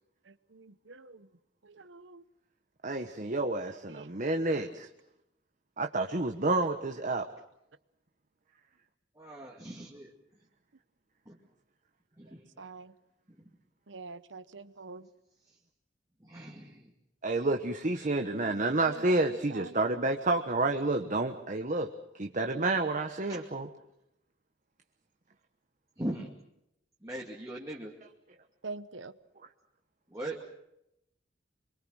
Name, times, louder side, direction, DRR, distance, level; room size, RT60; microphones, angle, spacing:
voice 1, 0.5-1.3 1.6-2.2 3.9-4.1 12.6-12.9 13.9-15.1 18.3-18.6 18.9-19.2 19.5-20.1 28.6-29.1, right 3 dB, 85° right, 14 dB, 1.0 m, -45 dB
voice 2, 2.8-4.9 5.8-7.3 17.2-21.9 22.2-23.7, right 2 dB, 45° right, 5 dB, 1.2 m, -29 dB
voice 3, 9.1-10.5 11.3-11.4 12.2-12.7 13.4-13.5 15.4-15.6 16.2-16.9 23.3-23.6 26.0-26.3 27.0-27.9 30.1-30.4, right 1 dB, 20° right, -2 dB, 2.4 m, -41 dB
26.0 x 24.0 x 6.4 m, 0.82 s
head